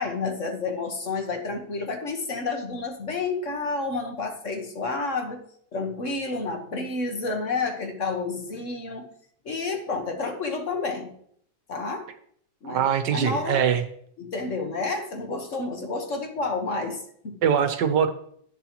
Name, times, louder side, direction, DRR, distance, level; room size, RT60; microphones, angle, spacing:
voice 1, 0.0-5.4 5.7-9.1 9.4-11.1 11.7-12.1 12.6-12.8 13.1-13.6 14.2-17.4, left 3 dB, 45° left, 4 dB, 1.5 m, -30 dB
voice 2, 12.6-13.8 17.4-18.1, right 8 dB, 75° right, 9 dB, 1.5 m, -22 dB
11.0 x 10.0 x 3.0 m, 0.64 s
omnidirectional pair, 1.9 m